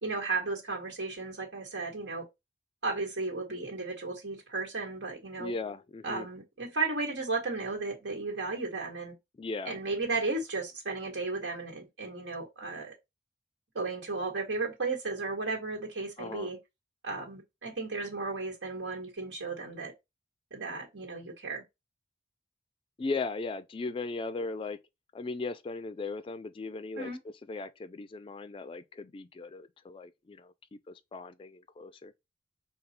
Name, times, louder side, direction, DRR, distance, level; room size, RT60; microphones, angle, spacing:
voice 1, 0.0-2.2 2.8-5.5 6.0-9.1 9.6-12.9 13.7-16.6 17.0-19.9 20.5-21.6 27.0-27.2, right 3 dB, 90° right, 1.5 m, -34 dB
voice 2, 5.4-6.3 9.4-9.8 16.2-16.5 23.0-24.8 25.1-27.1 27.5-32.1, left 3 dB, 30° left, 0.3 m, -37 dB
5.3 x 2.3 x 4.2 m
head